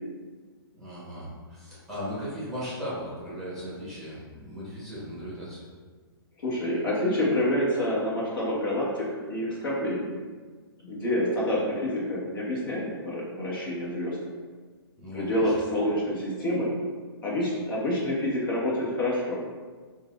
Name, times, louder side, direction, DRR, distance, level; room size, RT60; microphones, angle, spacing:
voice 1, 0.7-5.6 15.0-15.5, equal, 5° left, -9 dB, 1.2 m, -37 dB
voice 2, 6.4-10.2 10.8-14.2 15.1-16.7 17.2-19.4, left 1 dB, 60° left, -5 dB, 1.5 m, -27 dB
5.5 x 2.7 x 2.5 m, 1.5 s
hypercardioid pair, 165°, 13 cm